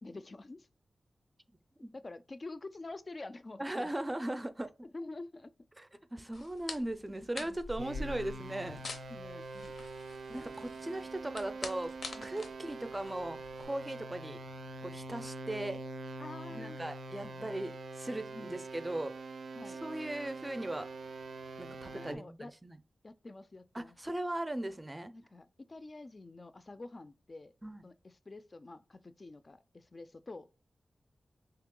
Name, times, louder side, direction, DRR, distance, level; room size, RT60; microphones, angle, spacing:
voice 1, 0.0-0.7 1.9-3.9 4.8-5.5 7.4-7.6 9.1-9.7 10.3-11.1 12.1-12.4 16.2-16.8 17.2-17.5 18.3-18.6 19.5-19.8 21.8-22.5 23.0-24.0 25.1-27.5 27.8-30.5, left 2 dB, 40° left, 0.3 m, -48 dB
voice 2, 3.6-4.7 5.8-8.8 10.3-11.9 12.2-14.4 14.8-15.8 16.5-19.1 19.8-20.9 21.6-22.8 23.7-25.1 27.6-27.8, right 1 dB, 20° right, 0.5 m, -38 dB
sound 1, 6.3-13.6, left 3 dB, 80° left, 0.6 m, -46 dB
sound 2, 7.8-22.1, right 2 dB, 80° right, 0.4 m, -44 dB
3.1 x 2.9 x 3.7 m
cardioid pair, 70°, 0 cm